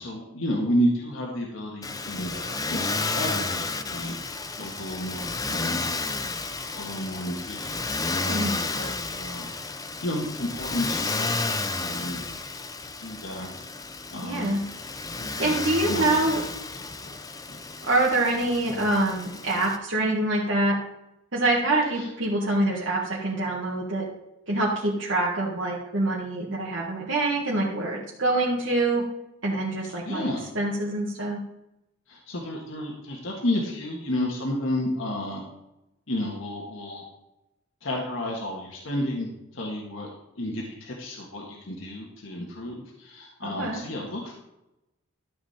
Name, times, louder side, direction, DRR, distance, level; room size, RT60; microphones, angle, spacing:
voice 1, 0.0-5.8 6.7-7.7 8.1-9.5 10.0-12.2 13.0-13.6 14.1-14.6 15.1-16.4 17.0-17.2 17.5-17.6 18.7-18.8 22.0-22.1 30.0-30.4 32.1-35.4 36.1-37.0 37.8-40.1 40.3-44.3, left 1 dB, 70° left, -1 dB, 1.7 m, -31 dB
Motor vehicle (road), 1.8-19.8, left 3 dB, 15° left, 0.6 m, -32 dB
voice 2, 14.2-14.6 15.4-16.4 17.8-20.7 21.3-24.0 24.5-29.0 29.4-31.4 43.4-43.8, right 2 dB, 65° right, -5 dB, 1.8 m, -25 dB
13.0 x 7.5 x 4.3 m, 0.90 s
head